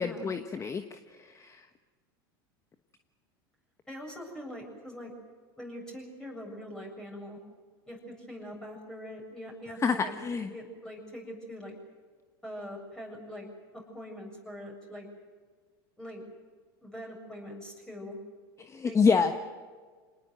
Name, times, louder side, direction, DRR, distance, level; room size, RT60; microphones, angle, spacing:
voice 1, 0.0-1.7 9.8-10.5 18.6-19.3, left 5 dB, 25° left, 8 dB, 1.3 m, -28 dB
voice 2, 3.9-5.1 5.6-7.4 7.9-11.8 12.4-13.5 13.7-15.1 16.0-16.2 16.8-18.2 18.8-19.3, equal, 5° left, -1 dB, 7.4 m, -43 dB
26.0 x 19.5 x 7.9 m, 1.5 s
hypercardioid pair, 95°, 12 cm